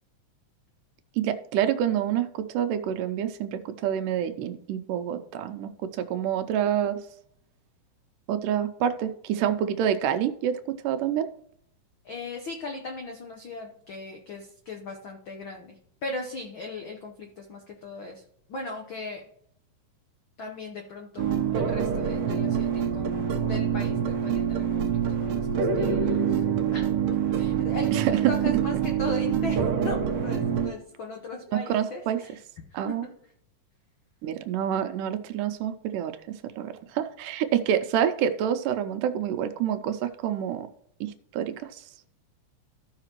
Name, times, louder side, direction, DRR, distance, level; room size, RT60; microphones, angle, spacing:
voice 1, 1.2-7.0 8.3-11.3 27.9-28.2 31.5-32.2 32.7-33.1 34.2-40.7 41.0-41.8, right 9 dB, 85° right, 9 dB, 2.1 m, -27 dB
voice 2, 12.0-18.2 18.5-19.3 20.4-26.4 26.7-32.4 32.7-33.1, left 2 dB, 90° left, 2 dB, 1.0 m, -38 dB
sound 1, 21.2-30.7, right 8 dB, 65° right, 1.6 m, -26 dB
15.0 x 5.7 x 3.0 m, 0.67 s
omnidirectional pair, 3.7 m